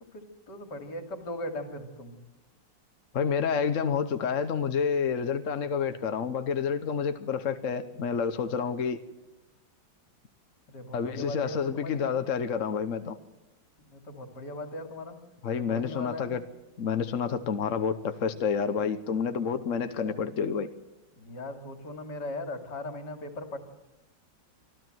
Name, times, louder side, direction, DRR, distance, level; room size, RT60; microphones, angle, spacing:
voice 1, 0.1-2.2 10.7-12.1 13.8-15.2 15.5-16.4 19.8-20.3 21.2-23.6, left 1 dB, 65° left, 5 dB, 3.1 m, -39 dB
voice 2, 3.1-9.0 10.9-13.2 15.4-16.4 16.8-20.7, left 6 dB, 50° left, 9 dB, 1.2 m, -29 dB
25.0 x 14.0 x 7.8 m, 1.0 s
omnidirectional pair, 2.0 m